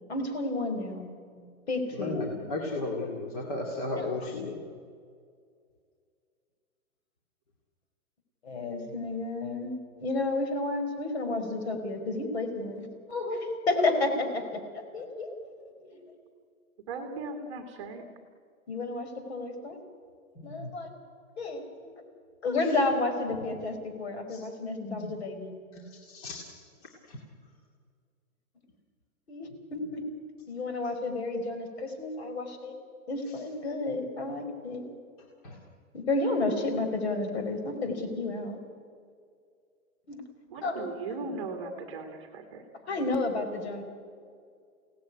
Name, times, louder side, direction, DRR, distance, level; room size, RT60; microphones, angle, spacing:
voice 1, 0.1-1.1 1.7-2.2 8.4-15.3 15.8-16.1 18.7-19.8 20.4-20.9 21.4-21.9 22.4-25.5 29.3-30.0 30.5-32.7 33.1-34.8 35.9-38.6 40.1-40.2 40.6-40.9 42.9-43.8, left 2 dB, 45° left, 6 dB, 5.0 m, -31 dB
voice 2, 1.9-4.6 20.6-20.7 22.6-22.7 24.3-25.1 25.7-26.6 27.1-27.2 35.4-35.6, left 2 dB, 25° left, 0 dB, 2.5 m, -35 dB
voice 3, 16.9-18.0 40.5-42.6, right 4 dB, 20° right, 5 dB, 1.6 m, -38 dB
29.0 x 17.5 x 9.8 m, 2.2 s
hypercardioid pair, 175°, 43 cm